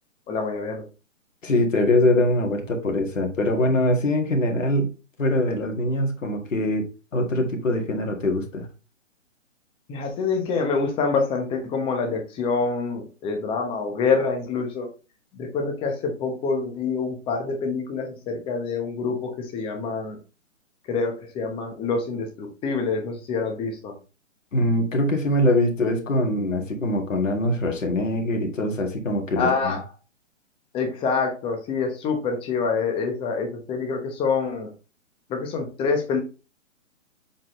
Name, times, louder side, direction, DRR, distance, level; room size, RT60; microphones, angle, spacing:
voice 1, 0.3-0.9 9.9-14.9 15.3-20.2 20.9-23.9 29.4-29.8 30.7-34.7 35.3-36.2, left 4 dB, 15° left, 1.0 m, -26 dB
voice 2, 1.4-4.9 5.2-6.8 7.1-8.7 24.5-29.8, left 1 dB, 75° left, 1.9 m, -23 dB
7.4 x 4.2 x 3.1 m
figure-of-eight pair, 135°, 39 cm